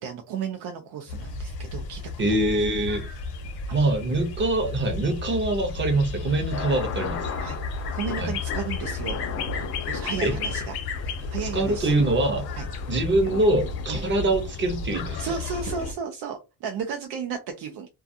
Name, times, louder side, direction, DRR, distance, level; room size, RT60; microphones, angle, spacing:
voice 1, 0.0-2.0 2.3-2.4 3.7-3.8 7.4-9.2 9.9-10.7 11.1-11.9 12.6-12.7 13.9-14.0 15.2-17.9, right 6 dB, 85° right, 3 dB, 0.6 m, -34 dB
sound 1, 1.1-15.9, left 4 dB, 70° left, 0.8 m, -33 dB
voice 2, 2.2-3.0 3.7-7.2 8.2-8.3 10.2-10.3 11.5-12.5 12.9-15.4, right 2 dB, 30° right, 5 dB, 0.6 m, -24 dB
sound 2, 5.8-15.9, left 6 dB, 40° left, 0.5 m, -38 dB
2.3 x 2.3 x 2.6 m, 0.26 s
cardioid pair, 155°, 38 cm